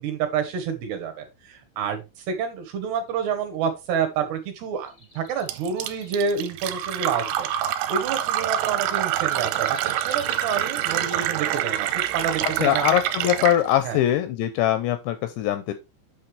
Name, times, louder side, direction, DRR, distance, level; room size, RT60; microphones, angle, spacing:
voice 1, 0.0-7.5 7.9-12.9 13.8-14.0, right 6 dB, 70° right, 5 dB, 2.8 m, -28 dB
sound 1, 4.7-5.5 5.8-6.2 7.1-7.2 7.6-11.5 11.7-12.1 13.2-13.5, left 1 dB, 35° left, 0.8 m, -46 dB
Fill (with liquid), 5.5-13.6, right 12 dB, 85° right, 3.2 m, -26 dB
voice 2, 12.6-15.7, left 12 dB, 85° left, 10 dB, 2.6 m, -22 dB
8.5 x 6.4 x 3.2 m, 0.24 s
omnidirectional pair, 5.7 m